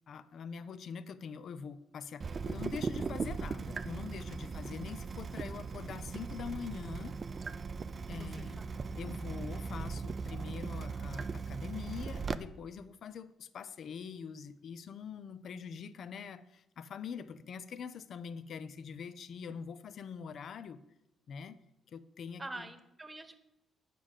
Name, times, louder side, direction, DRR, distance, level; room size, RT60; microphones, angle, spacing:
voice 1, 0.1-7.2 8.1-8.6 8.9-20.8 21.3-21.6 21.9-22.7, left 6 dB, 60° left, 14 dB, 0.6 m, -44 dB
Water tap faucet / Drip, 2.2-12.4, right 5 dB, 40° right, 0.4 m, -39 dB
voice 2, 8.2-8.6 22.4-23.4, right 2 dB, 15° right, 9 dB, 1.1 m, -46 dB
9.2 x 5.0 x 7.4 m, 0.91 s
cardioid pair, 90°, 0 cm